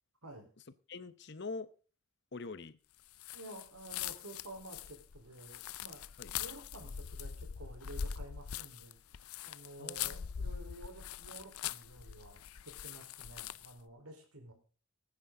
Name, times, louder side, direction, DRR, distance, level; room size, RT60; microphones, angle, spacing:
voice 1, 0.9-1.7 2.3-2.8 6.2-6.3 9.8-10.5, left 3 dB, 50° left, 15 dB, 0.8 m, -44 dB
sound 1, 3.1-13.8, left 8 dB, 85° left, 0.5 m, -42 dB
voice 2, 3.3-9.0 9.4-14.5, right 1 dB, 85° right, 4 dB, 4.1 m, -51 dB
18.5 x 9.8 x 3.8 m, 0.38 s
head